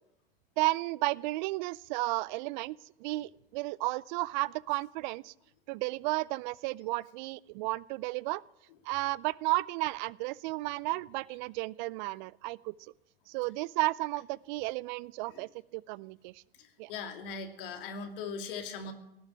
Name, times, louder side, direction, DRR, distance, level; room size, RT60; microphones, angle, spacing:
voice 1, 0.6-5.3 5.7-8.4 8.8-12.7 13.3-16.4 16.8-16.9, right 21 dB, 50° right, 23 dB, 0.5 m, -33 dB
voice 2, 16.6-18.9, left 5 dB, 65° left, 5 dB, 2.7 m, -40 dB
18.0 x 7.4 x 9.9 m, 0.86 s
hypercardioid pair, 100°, 30 cm